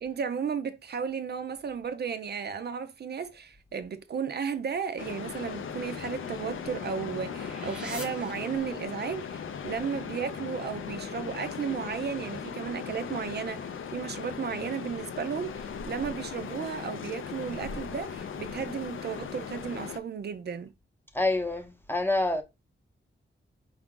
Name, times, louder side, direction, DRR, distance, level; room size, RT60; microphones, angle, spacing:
voice 1, 0.0-20.7, right 6 dB, 55° right, 0.4 m, -34 dB
sound 1, 5.0-20.0, left 6 dB, 90° left, 0.5 m, -38 dB
sound 2, 5.7-9.1, right 1 dB, 5° right, 1.0 m, -46 dB
voice 2, 21.1-22.4, left 2 dB, 10° left, 0.7 m, -27 dB
4.8 x 2.4 x 3.6 m
wide cardioid pair, 125°, 20 cm